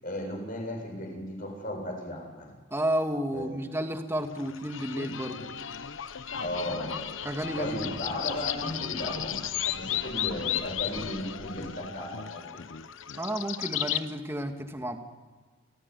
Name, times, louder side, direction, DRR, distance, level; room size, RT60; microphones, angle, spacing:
voice 1, 0.0-2.5 3.3-3.7 6.4-7.0 7.6-9.4 9.7-12.6, left 1 dB, 45° left, 2 dB, 7.3 m, -35 dB
voice 2, 2.7-5.5 7.2-7.9 13.1-15.0, right 1 dB, 15° right, 5 dB, 2.0 m, -31 dB
sound 1, 4.4-14.0, left 9 dB, 85° left, 0.9 m, -34 dB
28.5 x 16.5 x 9.8 m, 1.4 s
head